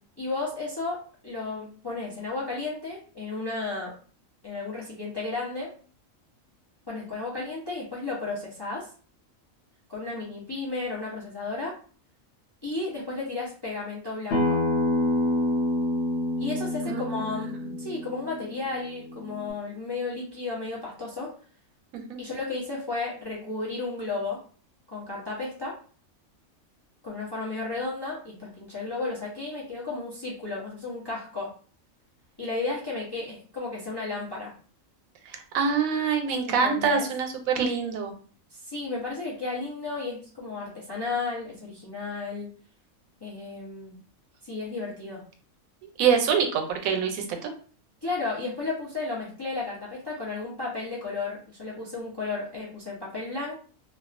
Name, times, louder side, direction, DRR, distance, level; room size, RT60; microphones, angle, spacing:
voice 1, 0.2-3.9 4.4-5.8 6.9-8.9 9.9-11.8 12.6-14.6 16.4-21.3 22.2-24.4 24.9-25.7 27.0-31.5 32.4-34.5 36.5-37.1 38.5-42.5 43.2-44.0 44.4-45.2 48.0-53.5, left 3 dB, 35° left, -5 dB, 0.4 m, -33 dB
Acoustic guitar, 14.3-19.5, left 1 dB, 60° left, 0.8 m, -28 dB
voice 2, 16.9-17.7 21.9-22.2 35.3-38.1 46.0-47.5, right 6 dB, 85° right, 5 dB, 1.0 m, -26 dB
2.3 x 2.3 x 2.4 m, 0.42 s
omnidirectional pair, 1.4 m